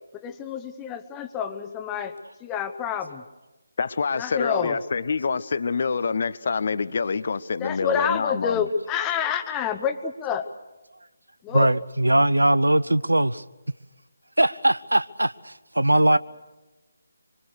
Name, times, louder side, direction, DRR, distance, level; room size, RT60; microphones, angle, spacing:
voice 1, 0.1-2.1 2.4-3.2 4.2-4.8 7.6-10.5 11.4-11.7 16.1-16.2, left 7 dB, 10° left, 1.1 m, -28 dB
voice 2, 3.8-8.7, left 5 dB, 45° left, 0.8 m, -26 dB
voice 3, 11.5-13.4 14.4-16.2, right 1 dB, 80° right, 0.7 m, -20 dB
25.5 x 24.0 x 6.5 m
figure-of-eight pair, 150°, 0 cm